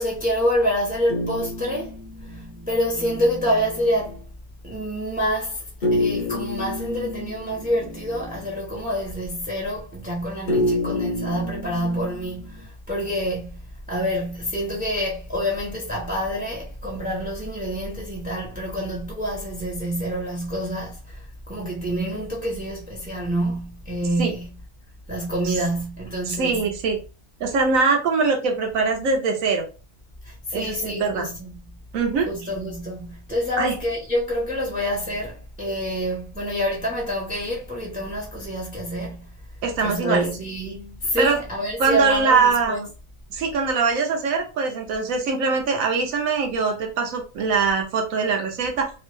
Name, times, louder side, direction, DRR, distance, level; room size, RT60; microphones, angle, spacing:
voice 1, 0.0-4.2 4.6-5.6 5.9-24.5 25.1-26.6 30.2-31.7 32.3-39.3 39.8-42.8, equal, 10° right, 0.4 m, -27 dB
sound 1, 1.1-4.2 5.8-8.8 10.5-12.7, left 2 dB, 50° left, 0.6 m, -29 dB
voice 2, 26.3-27.0 27.4-29.6 30.5-31.3 31.9-32.3 33.6-33.8 39.6-40.3 41.2-41.4 41.8-42.9 43.3-48.9, right 4 dB, 75° right, 1.1 m, -22 dB
3.0 x 2.1 x 3.0 m
omnidirectional pair, 1.4 m